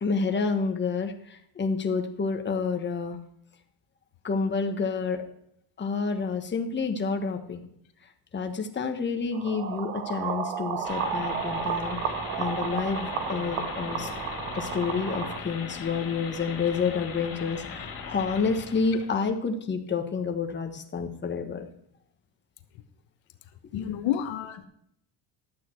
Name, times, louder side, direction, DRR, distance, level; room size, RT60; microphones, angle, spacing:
voice 1, 0.0-3.2 4.2-5.2 5.8-7.6 8.3-12.1 12.4-14.1 14.5-21.7 23.7-23.8, left 5 dB, 25° left, 4 dB, 1.2 m, -29 dB
sound 1, 9.3-15.4, right 7 dB, 90° right, 1.5 m, -32 dB
sound 2, 10.8-19.1, left 5 dB, 45° left, 2.8 m, -39 dB
voice 2, 23.7-24.7, left 10 dB, 75° left, 8 dB, 1.2 m, -29 dB
12.0 x 8.4 x 4.5 m, 0.72 s
cardioid pair, 110°, 46 cm